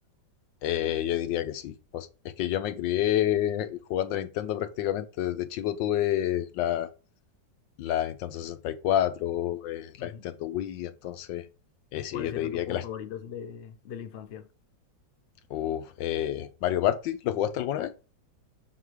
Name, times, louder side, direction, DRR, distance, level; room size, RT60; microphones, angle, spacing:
voice 1, 0.6-6.9 7.8-11.4 11.9-12.8 15.5-17.9, left 11 dB, 80° left, 1.3 m, -29 dB
voice 2, 12.1-14.5, left 8 dB, 55° left, 0.7 m, -39 dB
6.2 x 3.8 x 4.9 m
omnidirectional pair, 2.0 m